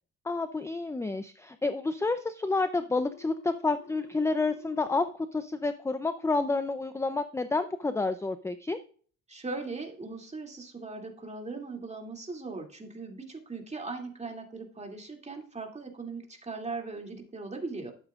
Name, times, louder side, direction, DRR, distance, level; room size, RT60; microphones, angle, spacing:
voice 1, 0.2-8.8, left 3 dB, 10° left, 11 dB, 0.5 m, -29 dB
Telephone, 3.1-5.1, left 5 dB, 45° left, 1.0 m, -51 dB
voice 2, 9.3-17.9, right 3 dB, 20° right, 1 dB, 2.6 m, -39 dB
12.0 x 8.6 x 2.4 m, 0.44 s
cardioid pair, 90°, 30 cm